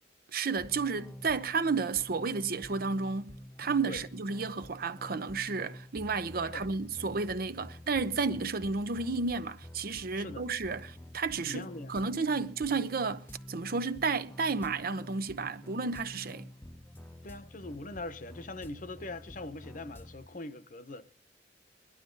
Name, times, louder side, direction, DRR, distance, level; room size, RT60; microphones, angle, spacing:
voice 1, 0.3-16.5, right 4 dB, 55° right, 0.7 m, -32 dB
sound 1, 0.6-20.3, left 1 dB, 10° left, 0.6 m, -49 dB
voice 2, 10.1-10.5 11.4-12.0 17.2-21.0, left 2 dB, 45° left, 0.9 m, -42 dB
21.0 x 11.5 x 3.9 m
head